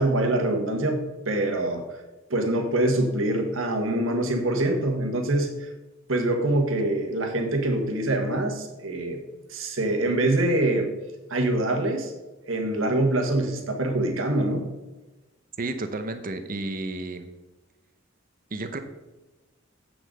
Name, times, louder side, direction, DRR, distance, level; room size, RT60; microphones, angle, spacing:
voice 1, 0.0-1.8 2.3-5.7 6.1-9.2 9.5-10.9 11.3-12.1 12.4-14.7, right 1 dB, 75° right, 3 dB, 1.6 m, -24 dB
voice 2, 15.6-17.3 18.5-18.8, right 2 dB, 45° right, 8 dB, 0.9 m, -32 dB
8.0 x 6.4 x 5.2 m, 1.1 s
head